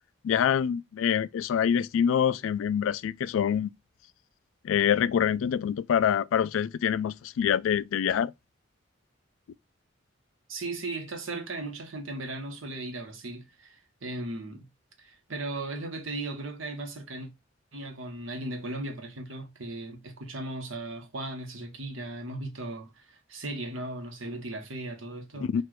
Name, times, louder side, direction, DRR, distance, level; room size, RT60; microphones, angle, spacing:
voice 1, 0.2-3.7 4.6-8.3 25.5-25.6, left 8 dB, 85° left, 0.3 m, -25 dB
voice 2, 10.5-14.6 15.0-17.3 17.7-25.5, right 2 dB, 90° right, 1.2 m, -37 dB
4.4 x 2.5 x 4.6 m
head